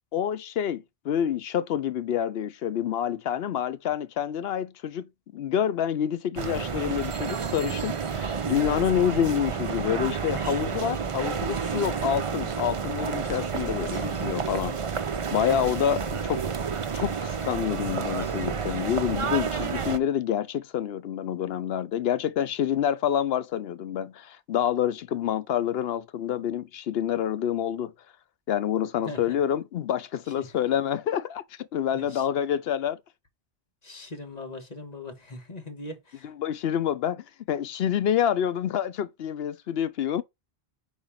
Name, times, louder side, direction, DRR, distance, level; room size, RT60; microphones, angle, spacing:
voice 1, 0.1-14.8 15.3-16.4 16.9-27.9 28.5-33.0 36.2-40.2, left 9 dB, 75° left, 0.8 m, -27 dB
sound 1, 6.4-20.0, right 6 dB, 40° right, 0.6 m, -30 dB
voice 2, 29.1-29.4 30.4-30.5 31.9-32.3 33.8-36.3, left 2 dB, 40° left, 1.6 m, -40 dB
4.9 x 4.3 x 5.7 m
omnidirectional pair, 1.0 m